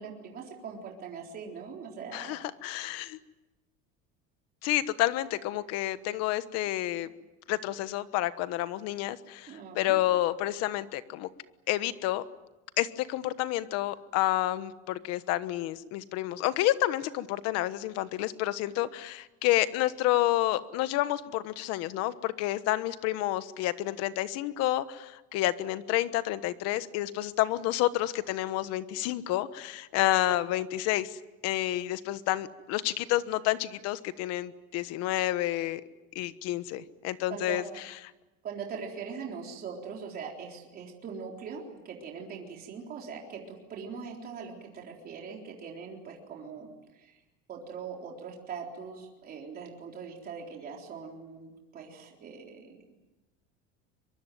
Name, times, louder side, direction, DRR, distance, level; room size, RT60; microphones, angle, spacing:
voice 1, 0.0-2.7 6.9-7.1 9.5-10.0 37.3-37.8 38.4-47.2 47.5-52.8, right 6 dB, 30° right, 0 dB, 3.9 m, -41 dB
voice 2, 2.1-3.2 4.6-7.1 7.5-11.3 11.7-12.2 12.8-35.8 36.1-37.6, left 15 dB, 55° left, 13 dB, 1.3 m, -29 dB
23.5 x 23.5 x 9.3 m, 1.0 s
cardioid pair, 170°, 30 cm